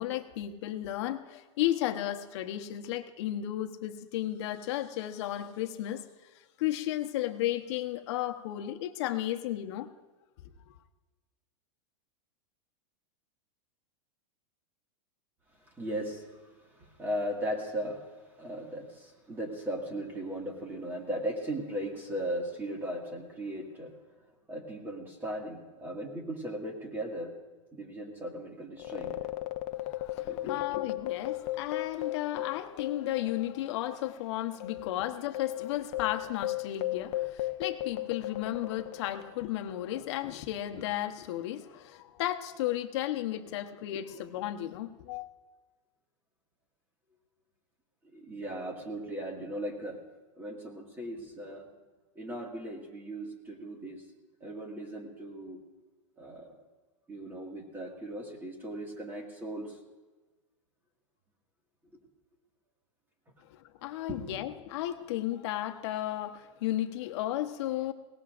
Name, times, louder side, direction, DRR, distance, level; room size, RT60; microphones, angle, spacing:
voice 1, 0.0-6.0 6.6-9.9 29.7-45.3 63.5-67.9, left 13 dB, 55° left, 1.0 m, -34 dB
voice 2, 15.7-18.1 18.4-23.9 24.5-27.4 27.7-29.2 30.2-30.6 48.1-50.0 50.4-51.7 52.2-54.0 54.4-55.6 56.2-56.6 57.1-59.8 64.1-64.2, right 1 dB, 10° right, 2.0 m, -37 dB
sound 1, 28.8-33.6 33.9-34.0 34.6-39.4, left 16 dB, 35° left, 0.7 m, -35 dB
21.5 x 18.0 x 2.5 m
supercardioid pair, 155°, 17 cm